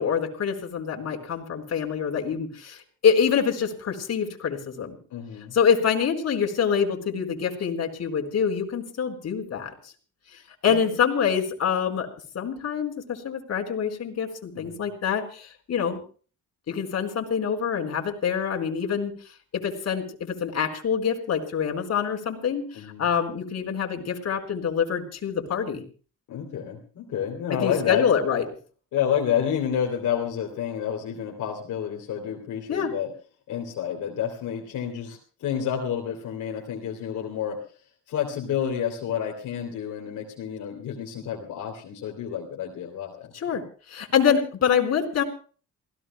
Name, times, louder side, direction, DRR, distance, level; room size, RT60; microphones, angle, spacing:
voice 1, 0.0-5.0 5.5-9.9 10.6-12.1 12.3-16.0 16.7-19.1 19.5-25.8 27.5-28.4 32.7-32.9 43.3-43.6 43.9-45.2, left 7 dB, 55° left, 3 dB, 4.4 m, -25 dB
voice 2, 5.1-5.5 10.7-10.8 14.5-14.9 22.7-23.0 26.3-28.1 28.9-33.1 33.5-37.6 38.1-43.3, left 9 dB, 80° left, 1 dB, 3.2 m, -29 dB
28.5 x 17.0 x 2.2 m, 0.40 s
cardioid pair, 90°, 30 cm